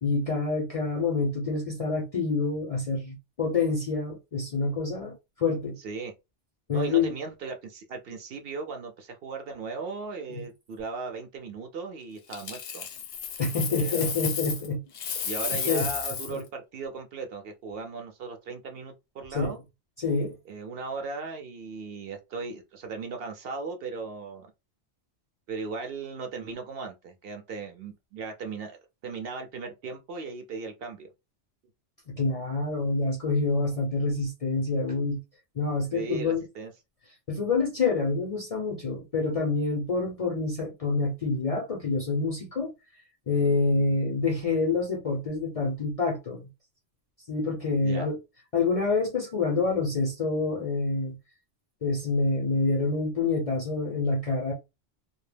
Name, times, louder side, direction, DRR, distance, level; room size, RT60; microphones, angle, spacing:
voice 1, 0.0-5.8 6.7-7.1 13.4-14.8 15.7-15.9 16.3-16.4 19.3-19.6 20.0-20.3 32.1-35.2 35.6-36.4 37.3-42.7 43.3-46.5 47.3-48.2 48.5-51.2 51.8-54.5, left 3 dB, 50° left, 0.4 m, -27 dB
voice 2, 6.7-12.9 13.7-14.2 15.2-19.6 20.5-24.5 25.5-31.1 35.9-36.7 47.8-48.1, right 4 dB, 65° right, 0.7 m, -37 dB
Coin (dropping), 12.3-14.7 14.9-16.4 19.2-19.4, left 7 dB, 75° left, 0.9 m, -33 dB
2.2 x 2.0 x 3.1 m
omnidirectional pair, 1.2 m